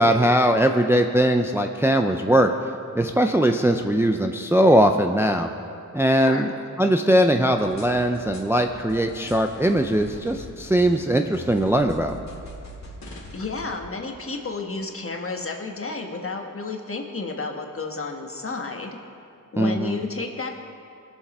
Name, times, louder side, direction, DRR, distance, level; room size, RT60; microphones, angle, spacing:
voice 1, 0.0-2.5 2.9-5.5 5.9-6.5 6.8-12.1 19.6-20.0, right 1 dB, 10° right, 5 dB, 0.5 m, -20 dB
sound 1, 7.6-13.7, left 1 dB, 60° left, 2.3 m, -42 dB
voice 2, 13.3-19.0 19.5-20.6, left 3 dB, 45° left, 3 dB, 1.3 m, -31 dB
21.0 x 7.3 x 4.2 m, 2.5 s
wide cardioid pair, 105°, 32 cm